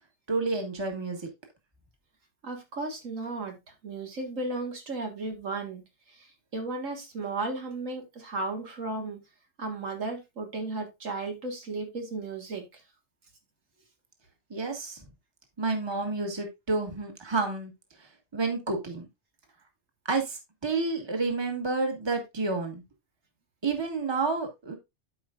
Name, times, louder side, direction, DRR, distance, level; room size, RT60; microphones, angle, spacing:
voice 1, 0.3-1.3 14.5-15.0 15.6-17.7 18.3-19.1 20.1-22.8 23.6-24.8, right 3 dB, 20° right, 4 dB, 1.5 m, -29 dB
voice 2, 2.4-9.2 9.6-12.8, right 3 dB, 80° right, 3 dB, 2.1 m, -35 dB
12.5 x 4.9 x 2.5 m, 0.22 s
omnidirectional pair, 1.3 m